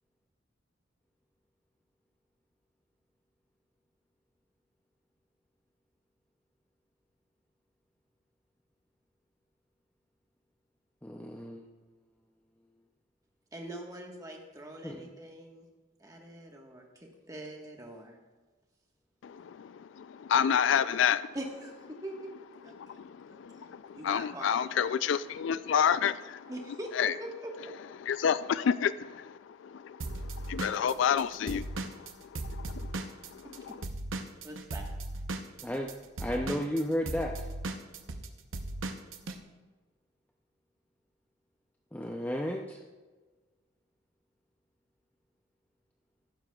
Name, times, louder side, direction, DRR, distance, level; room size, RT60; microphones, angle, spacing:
voice 1, 11.0-11.6 14.8-15.1 35.6-35.9 36.2-37.3 41.9-42.8, equal, 10° left, 0.5 m, -33 dB
voice 2, 13.5-15.7 16.0-18.2 21.3-22.3 22.6-23.0 23.3-23.7 23.9-24.8 26.5-27.7 33.4-33.8 34.4-34.9, right 1 dB, 20° right, 1.4 m, -43 dB
voice 3, 19.6-21.3 22.8-26.5 27.0-27.1 28.0-33.8, left 8 dB, 70° left, 0.3 m, -30 dB
Drum kit / Drum, 30.0-33.6 33.8-39.4, right 2 dB, 85° right, 0.8 m, -37 dB
14.5 x 12.0 x 2.3 m
head